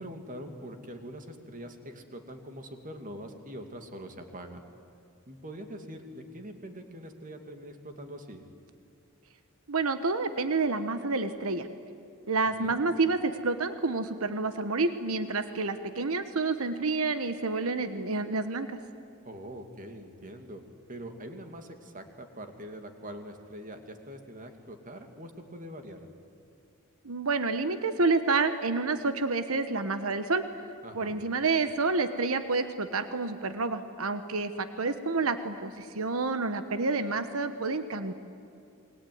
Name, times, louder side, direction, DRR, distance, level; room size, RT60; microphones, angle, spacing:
voice 1, 0.0-4.6 5.3-8.4 12.5-12.8 19.2-20.6 20.9-26.1 30.8-31.2, equal, 40° right, 5 dB, 2.6 m, -43 dB
voice 2, 9.7-11.7 12.3-18.8 27.0-30.4 30.9-38.1, right 3 dB, 80° right, 10 dB, 1.2 m, -29 dB
28.5 x 22.0 x 9.5 m, 2.6 s
head